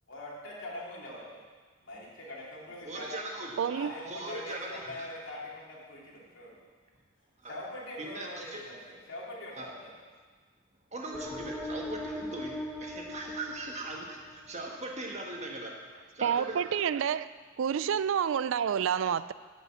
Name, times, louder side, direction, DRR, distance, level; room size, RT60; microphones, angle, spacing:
voice 1, 0.1-1.4 1.8-3.2 3.7-6.6 7.4-9.9, left 1 dB, 65° left, -5 dB, 2.9 m, -43 dB
voice 2, 2.8-3.6 4.0-5.1 7.4-7.5 8.0-8.6 9.6-9.7 10.9-15.8 16.1-16.6, right 2 dB, 35° right, 0 dB, 1.5 m, -40 dB
voice 3, 3.6-3.9 16.2-17.3 17.6-19.3, right 8 dB, 65° right, 16 dB, 0.3 m, -28 dB
sound 1, 11.1-14.7, left 1 dB, 10° left, 0.7 m, -39 dB
9.7 x 5.5 x 8.4 m, 1.5 s
head